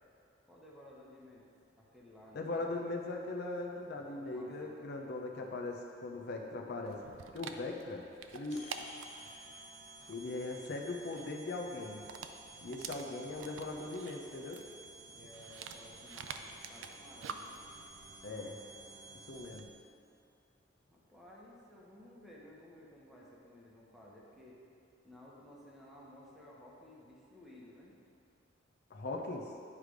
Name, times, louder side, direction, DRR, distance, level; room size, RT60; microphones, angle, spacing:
voice 1, 0.5-1.4 1.8-2.9 3.9-4.9 15.1-17.6 20.8-24.6 25.0-27.9, left 1 dB, ahead, -5 dB, 1.1 m, -56 dB
voice 2, 2.3-7.0 7.3-8.1 8.3-8.6 10.1-12.0 12.6-14.6 18.2-18.5 19.3-19.7 28.9-29.5, left 2 dB, 60° left, 1 dB, 0.6 m, -39 dB
Dog, 6.9-19.7, right 6 dB, 85° right, 0.4 m, -50 dB
sound 1, 8.5-19.9, right 2 dB, 35° left, 1.0 m, -54 dB
Bowed string instrument, 16.2-21.2, right 2 dB, 35° right, 0.7 m, -65 dB
9.8 x 3.3 x 5.0 m, 2.5 s
head